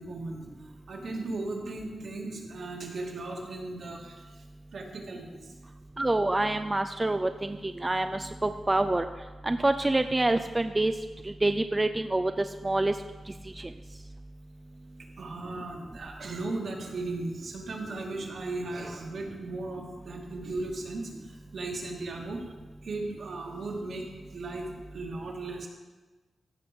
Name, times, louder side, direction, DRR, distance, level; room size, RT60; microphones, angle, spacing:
voice 1, 0.0-4.4 4.7-5.5 15.2-22.5 22.8-25.7, right 2 dB, 65° right, 0 dB, 2.1 m, -37 dB
voice 2, 6.0-9.1 9.4-11.0 11.2-13.0 13.3-13.7, right 2 dB, 20° right, 9 dB, 0.4 m, -27 dB
15.5 x 6.2 x 5.3 m, 1.3 s
wide cardioid pair, 105°, 0 cm